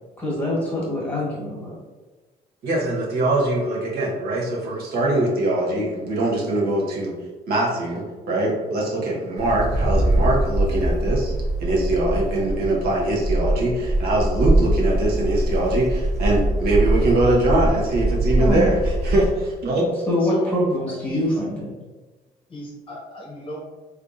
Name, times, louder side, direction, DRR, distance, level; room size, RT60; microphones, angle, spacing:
voice 1, 0.2-1.8 18.4-18.7 20.1-21.7, equal, 10° left, -5 dB, 1.4 m, -24 dB
voice 2, 2.6-7.1 7.5-11.3 11.6-19.9, right 1 dB, 65° right, -3 dB, 0.9 m, -22 dB
Wind, 9.4-19.4, right 1 dB, 40° right, 0.7 m, -22 dB
voice 3, 20.2-20.5 21.0-21.4 22.5-23.6, equal, 30° left, -2 dB, 0.8 m, -37 dB
3.4 x 2.4 x 2.6 m, 1.2 s
cardioid pair, 110°, 17 cm